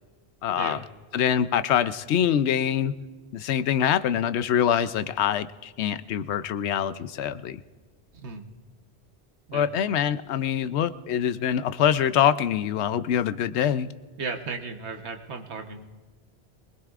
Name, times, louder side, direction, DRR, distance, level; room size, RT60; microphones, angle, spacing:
voice 1, 0.4-0.8 1.1-2.9 3.3-7.6 9.5-13.9, left 9 dB, 85° left, 13 dB, 0.9 m, -24 dB
voice 2, 14.2-15.9, right 4 dB, 85° right, 5 dB, 1.4 m, -35 dB
24.5 x 20.0 x 2.5 m, 1.4 s
omnidirectional pair, 1.1 m